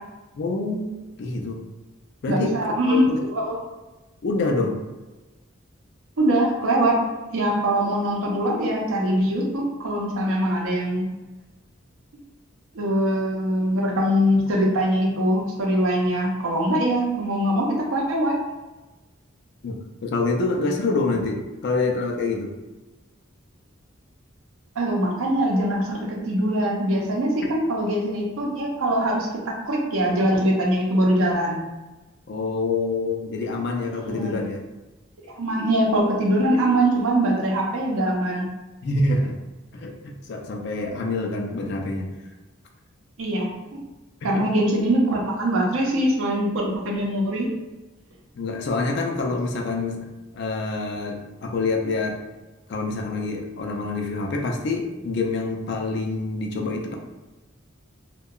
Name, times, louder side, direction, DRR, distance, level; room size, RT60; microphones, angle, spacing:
voice 1, 0.4-1.6 2.2-3.3 4.2-4.8 19.6-22.5 32.3-34.6 38.8-39.4 39.7-42.1 44.2-44.5 48.3-50.0 50.3-52.2 52.7-56.9, left 3 dB, 55° left, 2 dB, 0.4 m, -26 dB
voice 2, 2.3-3.6 6.2-11.1 12.7-18.4 24.8-31.6 34.0-34.5 35.4-38.4 43.2-43.8 44.2-47.5, right 1 dB, 85° right, -1 dB, 0.6 m, -22 dB
2.7 x 2.2 x 2.3 m, 1.1 s
head